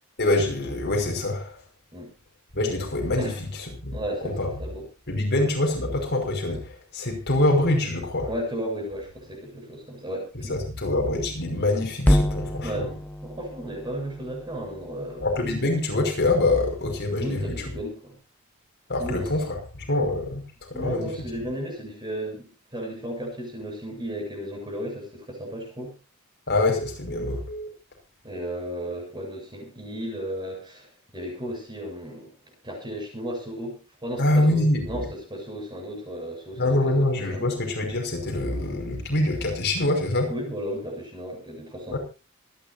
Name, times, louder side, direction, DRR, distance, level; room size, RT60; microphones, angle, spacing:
voice 1, 0.2-1.6 2.5-4.0 4.2-4.5 5.1-8.3 10.5-12.9 15.2-17.6 18.9-20.4 20.7-21.1 26.5-27.7 34.2-35.0 36.6-40.3 41.9-42.0, left 2 dB, 50° left, 2 dB, 5.6 m, -25 dB
voice 2, 3.9-4.9 8.3-10.6 12.6-15.3 17.2-18.2 19.0-19.3 20.7-25.9 28.2-32.3 32.6-36.9 37.3-37.4 40.3-42.0, equal, 20° right, 2 dB, 7.6 m, -34 dB
sound 1, 12.0-16.4, equal, 5° left, 0.7 m, -28 dB
26.5 x 11.0 x 2.7 m, 0.30 s
head